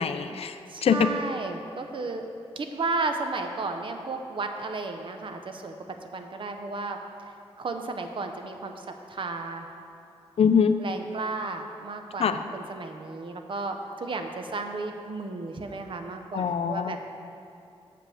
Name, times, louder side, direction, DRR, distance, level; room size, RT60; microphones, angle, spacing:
voice 1, 0.0-1.1 10.4-10.8 12.2-12.4 16.3-17.0, left 6 dB, 65° left, 9 dB, 0.4 m, -23 dB
voice 2, 0.7-2.3 2.6-5.8 6.1-7.0 7.6-9.7 10.8-17.0, right 3 dB, 50° right, 5 dB, 0.6 m, -33 dB
7.5 x 5.1 x 6.9 m, 2.7 s
wide cardioid pair, 135°, 11 cm